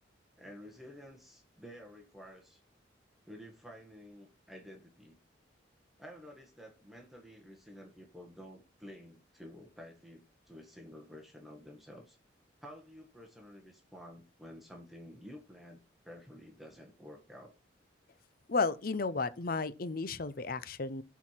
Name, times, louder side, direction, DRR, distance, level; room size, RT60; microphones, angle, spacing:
voice 1, 0.4-2.6 3.3-5.2 6.0-12.2 12.6-15.8 16.0-17.5, equal, ahead, 1.5 m, -51 dB
voice 2, 18.5-21.0, left 4 dB, 50° left, 0.7 m, -33 dB
7.9 x 4.7 x 5.8 m
head